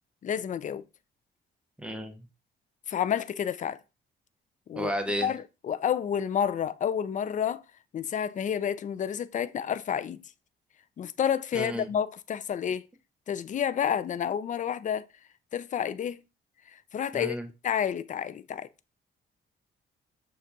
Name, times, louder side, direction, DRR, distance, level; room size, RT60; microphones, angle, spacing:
voice 1, 0.2-0.8 2.9-3.8 4.7-4.9 5.2-7.6 7.9-10.2 11.0-12.9 13.3-15.1 15.5-16.2 16.7-17.4 17.6-18.7, left 8 dB, 40° left, 0.4 m, -30 dB
voice 2, 1.8-2.2 4.8-5.3 11.5-11.9 17.1-17.5, equal, 5° right, 0.9 m, -32 dB
6.5 x 2.4 x 2.8 m
cardioid pair, 90°, 20 cm